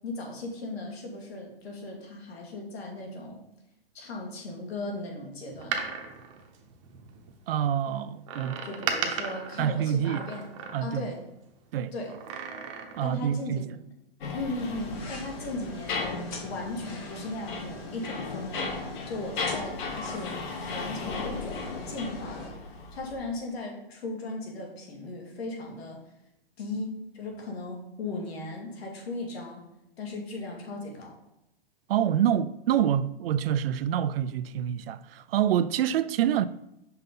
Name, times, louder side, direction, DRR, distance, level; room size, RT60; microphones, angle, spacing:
voice 1, 0.0-3.5 3.9-5.8 7.9-8.0 8.6-10.5 10.8-11.2 11.9-12.1 13.0-13.6 14.3-22.6 22.9-26.0 26.6-29.6 30.0-31.2, left 2 dB, 85° left, 2.2 m, -37 dB
Door, 5.5-7.3 8.3-11.1 12.1-13.2 13.5-13.6, right 6 dB, 30° right, 0.7 m, -36 dB
voice 2, 7.5-8.6 9.6-10.3 10.7-11.1 11.7-11.9 13.0-13.7 31.9-36.5, right 10 dB, 70° right, 0.5 m, -26 dB
sound 1, 14.2-23.2, left 4 dB, 50° left, 1.2 m, -36 dB
sound 2, 14.6-22.5, left 2 dB, 10° left, 0.3 m, -43 dB
5.5 x 5.5 x 4.0 m
hypercardioid pair, 160°, 31 cm